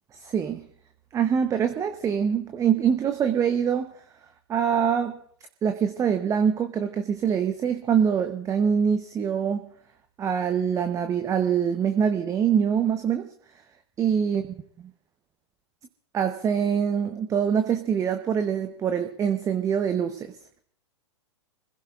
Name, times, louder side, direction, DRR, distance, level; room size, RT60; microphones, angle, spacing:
voice 1, 0.2-0.6 1.1-3.9 4.5-5.2 5.6-9.7 10.2-13.3 14.0-14.4 16.1-20.3, right 7 dB, 20° right, 8 dB, 0.8 m, -24 dB
27.5 x 16.0 x 2.4 m, 0.63 s
hypercardioid pair, 110°, 16 cm